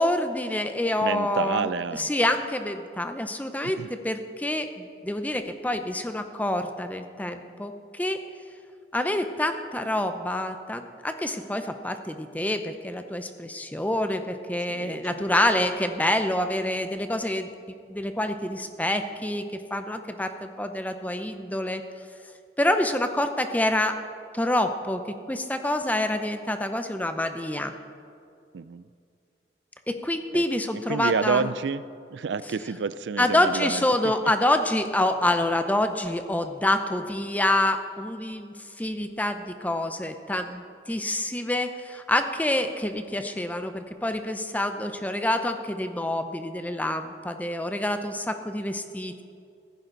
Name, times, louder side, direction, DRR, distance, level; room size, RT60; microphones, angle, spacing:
voice 1, 0.0-8.2 8.9-17.5 17.9-19.4 19.7-21.8 22.6-24.0 24.3-25.0 25.3-27.7 29.9-31.5 33.2-49.2, left 1 dB, 10° left, 8 dB, 0.7 m, -27 dB
voice 2, 1.0-2.1 3.6-3.9 14.7-15.2 28.5-28.9 30.3-30.4 30.7-31.8 32.1-34.3, right 5 dB, 85° right, 15 dB, 0.4 m, -29 dB
15.5 x 14.0 x 4.0 m, 2.4 s
head